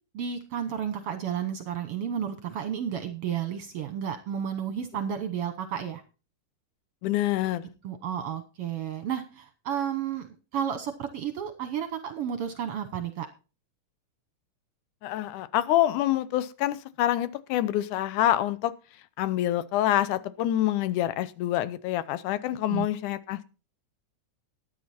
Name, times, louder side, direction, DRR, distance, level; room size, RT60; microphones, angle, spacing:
voice 1, 0.1-6.0 7.8-13.3 22.7-22.9, right 8 dB, 65° right, 9 dB, 1.6 m, -32 dB
voice 2, 7.0-7.7 15.0-18.7 19.2-23.4, left 13 dB, 80° left, 15 dB, 2.2 m, -26 dB
13.0 x 9.6 x 4.2 m, 0.33 s
omnidirectional pair, 3.6 m